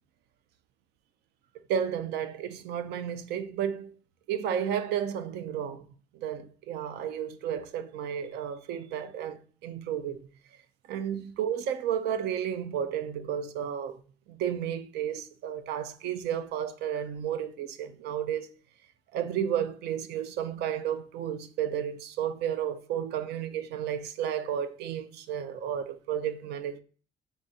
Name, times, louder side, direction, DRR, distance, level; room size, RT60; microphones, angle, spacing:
voice 1, 1.7-3.9 4.3-5.9 6.1-10.3 10.9-14.0 14.3-18.5 19.1-26.8, right 9 dB, 75° right, 0.4 m, -32 dB
4.5 x 2.6 x 2.7 m
cardioid pair, 110°, 17 cm